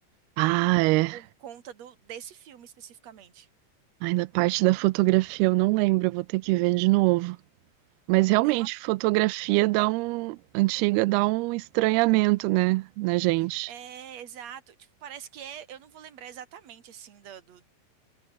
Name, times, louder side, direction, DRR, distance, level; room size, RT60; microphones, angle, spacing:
voice 1, 0.4-1.2 4.0-7.4 8.1-13.7, right 22 dB, 80° right, 2.5 m, -23 dB
voice 2, 1.1-3.5 8.4-8.7 13.7-17.6, right 9 dB, 45° right, 3.0 m, -44 dB
omnidirectional pair, 4.7 m